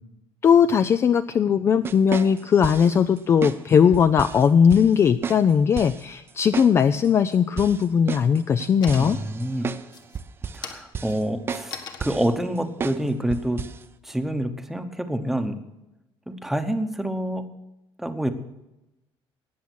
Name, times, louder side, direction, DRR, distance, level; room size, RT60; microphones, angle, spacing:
voice 1, 0.4-9.2, left 7 dB, 25° left, 11 dB, 0.4 m, -19 dB
sound 1, 1.8-3.0 3.4-3.6 3.9-4.4 4.7-4.9 5.2-5.4 5.8-6.0 6.5-6.7 7.0-7.1 7.6-9.9 10.2-10.7 10.9-11.2 11.5-11.7 12.0-12.3 12.8-13.0 13.3-13.8, right 6 dB, 25° right, 0.6 m, -32 dB
sound 2, 8.4-8.6 8.8-9.4 9.8-14.3, left 6 dB, 45° left, 1.5 m, -42 dB
voice 2, 9.0-9.7 10.5-13.6 14.0-15.6 16.3-17.4 18.0-18.3, right 1 dB, 5° right, 7 dB, 1.0 m, -27 dB
18.5 x 7.2 x 6.2 m, 0.91 s
cardioid pair, 175°, 10 cm